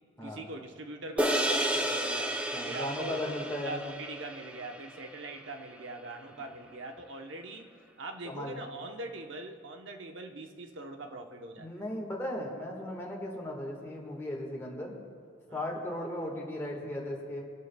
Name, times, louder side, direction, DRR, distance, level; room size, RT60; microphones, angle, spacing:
voice 1, 0.2-2.3 2.6-3.3 3.6-7.7 8.0-11.8 15.5-15.6, right 2 dB, 70° right, 4 dB, 1.0 m, -42 dB
sound 1, 1.2-5.8, right 1 dB, 5° right, 0.7 m, -32 dB
voice 2, 2.5-3.8 6.4-6.5 8.2-8.6 11.6-14.9 15.5-17.4, left 1 dB, 15° left, -2 dB, 1.6 m, -36 dB
28.0 x 11.0 x 2.3 m, 2.2 s
head